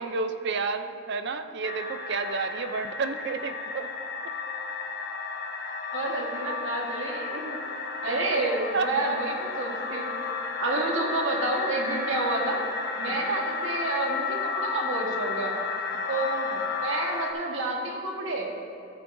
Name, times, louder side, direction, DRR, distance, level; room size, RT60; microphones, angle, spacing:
voice 1, 0.0-3.9 8.7-9.2 10.8-10.9 13.0-13.2 15.9-16.1, right 4 dB, 60° right, 9 dB, 0.5 m, -31 dB
sound 1, 1.6-17.3, left 4 dB, 55° left, 0.8 m, -33 dB
voice 2, 5.9-7.6 8.0-10.1 10.6-12.6 13.0-15.6 16.1-18.6, right 2 dB, 80° right, 0 dB, 1.4 m, -29 dB
14.0 x 8.8 x 2.6 m, 2.7 s
head